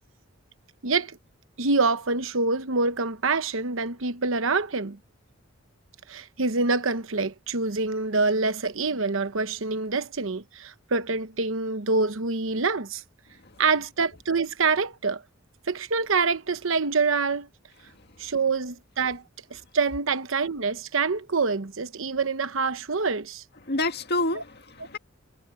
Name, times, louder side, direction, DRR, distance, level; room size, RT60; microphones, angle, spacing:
voice 1, 0.8-1.2 1.6-5.0 6.1-13.0 13.6-15.2 15.7-17.5 18.2-19.2 19.5-23.4 24.3-24.4, right 4 dB, 70° right, 1.0 m, -26 dB
voice 2, 23.7-25.0, left 2 dB, 55° left, 2.0 m, -28 dB
head